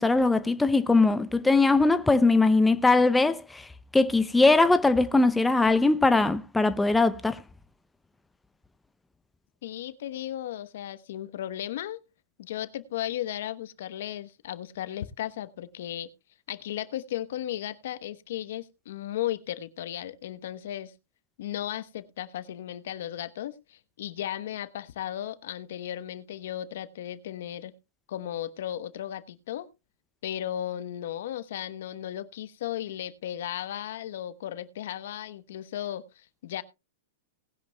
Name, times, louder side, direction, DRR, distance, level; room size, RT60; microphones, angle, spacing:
voice 1, 0.0-3.7 3.9-7.4, left 3 dB, 5° left, 0.5 m, -21 dB
voice 2, 9.6-12.0 12.4-16.1 16.5-20.9 21.4-27.7 28.1-29.7 30.2-36.6, left 12 dB, 70° left, 0.9 m, -35 dB
19.0 x 10.5 x 2.2 m
hypercardioid pair, 130°, 0 cm